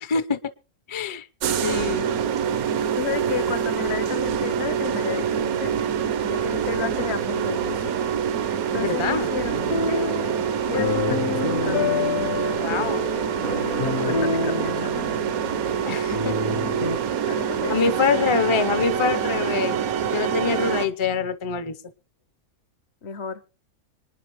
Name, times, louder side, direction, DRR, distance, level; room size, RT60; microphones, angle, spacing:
voice 1, 0.0-0.4 0.9-1.3 1.6-2.1 8.7-9.3 12.6-13.0 15.9-16.3 17.7-19.7 20.1-21.8, left 5 dB, 35° left, 0.5 m, -25 dB
sound 1, 1.4-20.9, right 8 dB, 80° right, 1.3 m, -26 dB
voice 2, 3.0-5.8 6.2-7.9 8.7-10.1 10.7-12.1 13.8-15.0 15.7-15.8 17.2-17.8 23.0-23.4, left 7 dB, 55° left, 1.0 m, -32 dB
sound 2, 9.5-17.0, left 3 dB, 70° left, 2.0 m, -28 dB
25.5 x 10.0 x 3.0 m
omnidirectional pair, 1.5 m